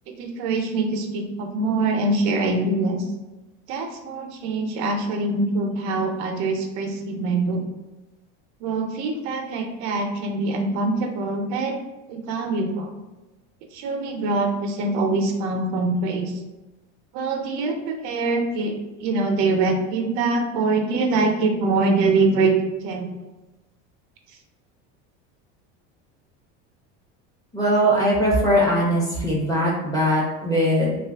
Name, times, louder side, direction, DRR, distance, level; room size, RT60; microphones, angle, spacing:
voice 1, 0.2-3.0 3.7-7.6 8.6-11.8 12.1-12.9 13.7-16.3 17.1-18.8 19.0-23.1, right 3 dB, 75° right, 3 dB, 0.7 m, -24 dB
voice 2, 27.5-31.0, equal, 10° left, -5 dB, 0.8 m, -20 dB
2.7 x 2.4 x 3.4 m, 1.1 s
cardioid pair, 135°, 35 cm